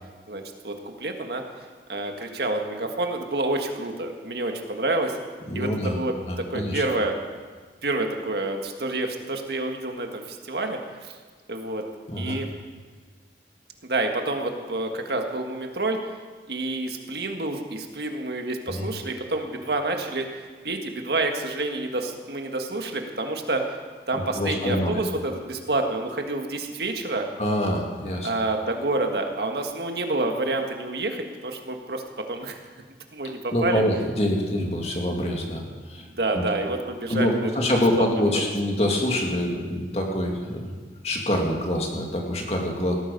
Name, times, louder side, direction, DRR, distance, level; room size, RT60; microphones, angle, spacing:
voice 1, 0.3-0.7 1.0-1.4 1.9-5.2 5.5-7.1 7.8-11.1 11.5-11.8 12.2-12.5 13.8-16.0 16.5-23.6 24.1-27.3 28.2-32.0 32.3-32.6 33.1-33.8 36.0-37.5 38.0-38.1 38.3-38.4, right 2 dB, 70° right, 4 dB, 1.7 m, -28 dB
voice 2, 5.5-6.0 6.3-6.8 12.1-12.4 18.7-18.9 24.1-25.0 27.4-28.3 33.5-35.6 35.9-36.1 36.3-36.4 37.1-40.7 41.0-43.0, left 1 dB, 35° left, 0 dB, 2.3 m, -25 dB
18.0 x 14.0 x 5.4 m, 1.5 s
head